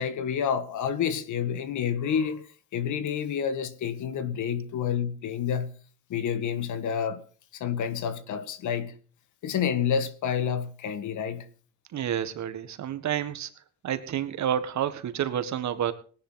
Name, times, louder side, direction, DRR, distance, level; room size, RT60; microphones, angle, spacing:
voice 1, 0.0-2.5 2.7-5.7 6.1-7.2 7.5-8.9 9.4-11.5, left 7 dB, 75° left, 1.7 m, -29 dB
voice 2, 11.9-13.5 13.8-15.9, right 10 dB, 65° right, 1.7 m, -29 dB
19.0 x 10.5 x 3.9 m
cardioid pair, 90°, 30 cm